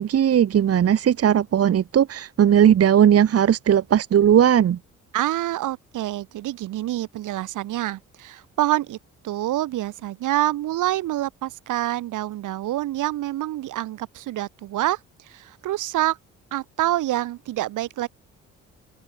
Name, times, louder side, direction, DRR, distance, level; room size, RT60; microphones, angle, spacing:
voice 1, 0.0-4.8, right 9 dB, 50° right, 1.2 m, -18 dB
voice 2, 5.1-9.0 9.2-16.2 16.5-18.1, right 14 dB, 85° right, 5.5 m, -26 dB
open air
cardioid pair, 90°, 30 cm